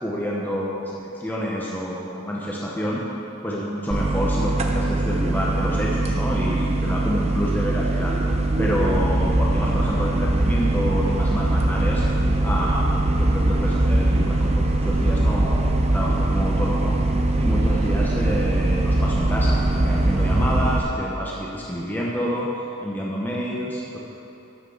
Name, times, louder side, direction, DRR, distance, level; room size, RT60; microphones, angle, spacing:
voice 1, 0.0-3.0 3.4-8.2 8.6-12.0 12.4-17.0 17.4-22.5 22.8-24.0, equal, 10° left, -5 dB, 0.9 m, -28 dB
sound 1, 3.9-20.8, right 1 dB, 30° right, 0.7 m, -21 dB
11.5 x 6.1 x 5.8 m, 2.9 s
head